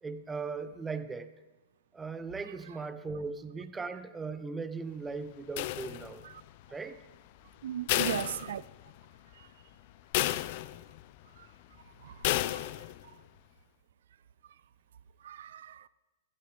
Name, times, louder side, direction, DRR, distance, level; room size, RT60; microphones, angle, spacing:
voice 1, 0.0-1.3 1.9-6.2 6.7-7.0, right 4 dB, 10° right, 0.7 m, -38 dB
sound 1, 5.6-6.4 7.9-9.0 9.4-9.5 10.1-11.0 12.2-13.0, left 16 dB, 50° left, 0.4 m, -32 dB
voice 2, 7.6-8.6 9.4-9.5 11.4-11.5 12.0-12.6 15.2-15.9, right 10 dB, 70° right, 0.5 m, -38 dB
15.5 x 11.5 x 3.5 m
hypercardioid pair, 125°, 0 cm